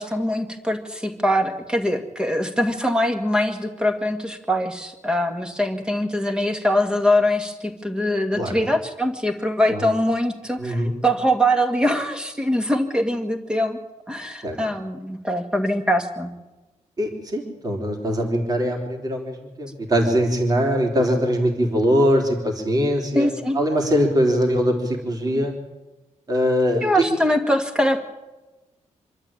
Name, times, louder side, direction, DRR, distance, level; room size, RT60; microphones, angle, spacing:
voice 1, 0.0-13.8 14.1-16.3 23.1-23.6 25.4-25.5 26.8-28.1, equal, 5° right, 6 dB, 2.0 m, -23 dB
voice 2, 10.6-11.0 14.4-14.6 17.0-23.3 23.5-25.5 26.3-27.0, equal, 30° right, 2 dB, 3.6 m, -22 dB
26.0 x 12.5 x 8.9 m, 1.1 s
wide cardioid pair, 175°, 13 cm